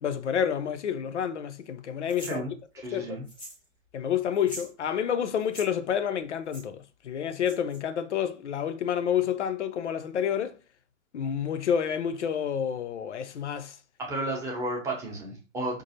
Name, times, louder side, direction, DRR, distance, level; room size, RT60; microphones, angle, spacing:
voice 1, 0.0-2.4 2.9-3.2 3.9-10.6 11.1-13.8, left 8 dB, 60° left, 0.6 m, -29 dB
sound 1, 2.1-2.4 3.3-3.6 3.9-4.0 4.3-4.7 5.4-5.7 6.5-6.6 7.4-7.8, right 1 dB, 10° left, 0.3 m, -42 dB
voice 2, 2.3-3.2 14.0-15.8, right 1 dB, 10° right, 0.8 m, -33 dB
5.2 x 2.5 x 2.7 m
figure-of-eight pair, 120°, 40 cm